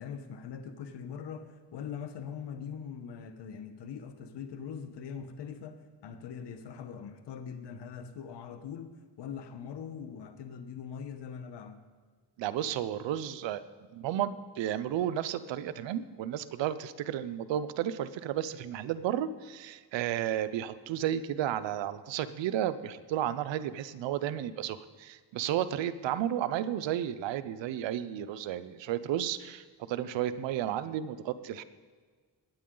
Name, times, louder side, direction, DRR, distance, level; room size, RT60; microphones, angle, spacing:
voice 1, 0.0-8.9 9.2-11.8, left 7 dB, 70° left, 8 dB, 1.2 m, -42 dB
voice 2, 12.4-13.6 13.9-31.6, right 11 dB, 90° right, 13 dB, 0.7 m, -33 dB
20.5 x 9.4 x 3.8 m, 1.5 s
cardioid pair, 80°, 43 cm